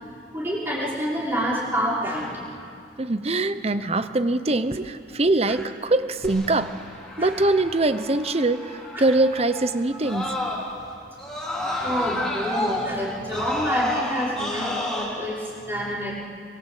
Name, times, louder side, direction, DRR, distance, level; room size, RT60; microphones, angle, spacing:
voice 1, 0.3-2.3 5.5-5.6 7.2-7.4 8.9-9.1 9.9-10.5 11.5-16.1, equal, 10° right, -5 dB, 5.4 m, -28 dB
voice 2, 3.0-6.8 7.2-10.3, right 2 dB, 35° right, 12 dB, 0.8 m, -23 dB
Screaming, 6.2-10.8 11.2-15.0, left 1 dB, 5° left, 5.4 m, -31 dB
24.0 x 23.5 x 8.5 m, 2.4 s
head